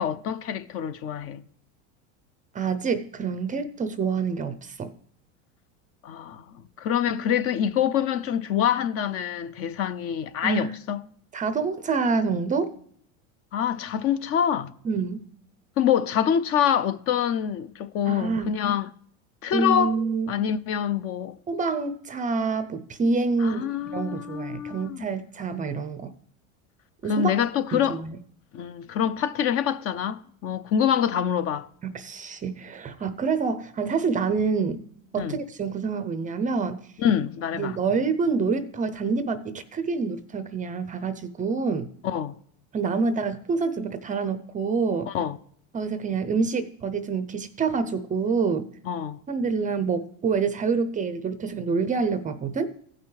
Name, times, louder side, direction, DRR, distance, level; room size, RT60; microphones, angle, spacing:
voice 1, 0.0-1.4 6.0-11.0 13.5-14.7 15.8-18.9 19.4-20.0 20.3-21.4 23.4-25.1 27.1-28.0 28.5-31.7 35.2-35.4 37.0-37.8 42.0-42.3 45.1-45.4 48.9-49.2, left 9 dB, 35° left, 0.5 m, -26 dB
voice 2, 2.5-4.9 10.4-10.7 11.3-12.7 14.8-15.2 18.1-18.5 19.5-20.3 21.5-23.7 23.9-26.1 27.0-27.4 27.7-28.2 31.8-34.8 35.1-36.8 37.5-41.9 42.7-45.1 45.7-48.7 49.3-52.7, right 4 dB, 20° right, 0.5 m, -27 dB
16.0 x 5.9 x 3.2 m
supercardioid pair, 120°, 40 cm